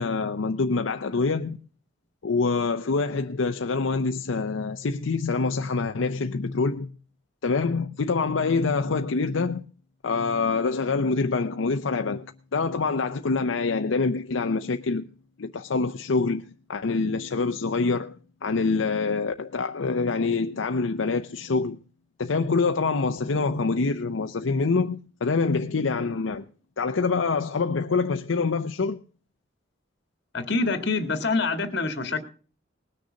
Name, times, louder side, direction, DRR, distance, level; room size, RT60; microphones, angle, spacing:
voice 1, 0.0-1.6 2.2-6.9 7.4-9.6 10.0-15.1 15.4-21.8 22.2-26.4 26.8-29.0, left 4 dB, 85° left, 0.6 m, -25 dB
voice 2, 30.3-32.2, left 3 dB, 60° left, 1.9 m, -26 dB
19.5 x 6.7 x 6.3 m
head